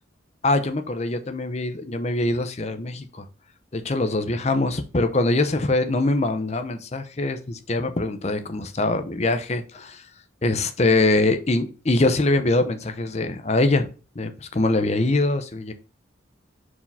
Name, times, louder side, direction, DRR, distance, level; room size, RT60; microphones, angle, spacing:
voice 1, 0.4-3.2 3.7-10.0 10.4-13.9 14.2-15.7, left 2 dB, 35° left, 8 dB, 0.6 m, -23 dB
4.8 x 3.7 x 5.4 m, 0.35 s
head